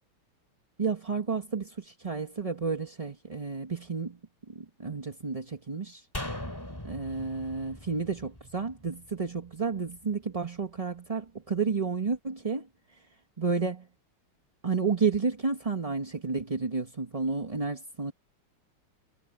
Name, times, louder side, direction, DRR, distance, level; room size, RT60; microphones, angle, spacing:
voice 1, 0.8-4.2 4.5-6.1 6.8-12.7 13.4-13.9 14.6-18.1, right 4 dB, 25° right, 0.9 m, -31 dB
sound 1, 6.1-9.5 9.8-9.9, left 1 dB, 10° left, 2.5 m, -40 dB
omnidirectional pair, 2.4 m